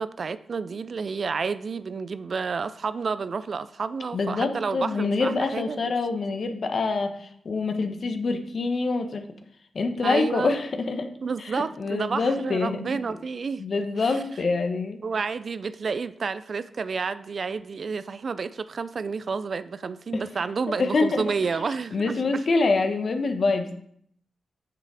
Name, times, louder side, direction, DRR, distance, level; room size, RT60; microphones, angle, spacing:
voice 1, 0.0-5.8 10.0-10.5 11.2-13.6 14.0-14.2 15.0-22.2, right 5 dB, 60° right, 14 dB, 0.4 m, -30 dB
voice 2, 4.1-9.2 9.7-11.1 11.4-12.9 13.6-15.0 20.1-20.2 20.8-21.2 21.9-23.7, left 3 dB, 65° left, 6 dB, 1.1 m, -25 dB
6.8 x 6.6 x 4.8 m, 0.68 s
cardioid pair, 55°, 0 cm